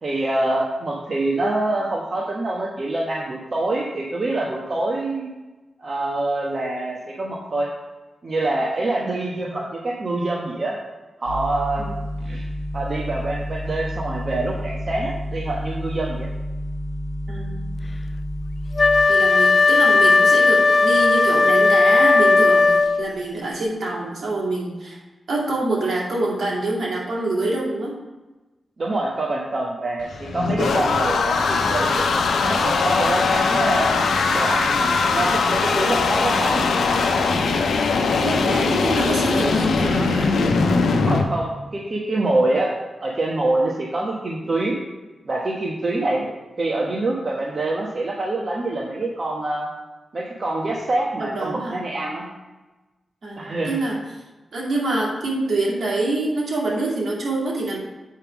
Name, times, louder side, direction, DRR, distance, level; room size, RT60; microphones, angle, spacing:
voice 1, 0.0-5.3 5.8-7.7 8.2-10.8 11.2-11.8 12.2-12.5 12.7-16.3 28.8-33.9 34.3-36.6 41.0-42.7 43.0-44.8 45.2-49.7 50.1-52.3 53.4-53.8, right 2 dB, 50° right, -3 dB, 1.2 m, -25 dB
sound 1, 11.3-19.0, equal, 90° right, 0.8 m, -30 dB
voice 2, 17.3-17.8 19.1-25.0 25.3-28.0 38.2-40.3 51.2-51.7 53.2-54.2 54.5-57.8, right 2 dB, 75° right, -4 dB, 2.5 m, -26 dB
Wind instrument woodwind instrument, 18.8-23.2, left 3 dB, 50° left, 0.3 m, -16 dB
sound 2, 30.0-41.2, left 4 dB, 90° left, 0.7 m, -20 dB
8.1 x 3.6 x 6.0 m, 1.1 s
cardioid pair, 50°, 0 cm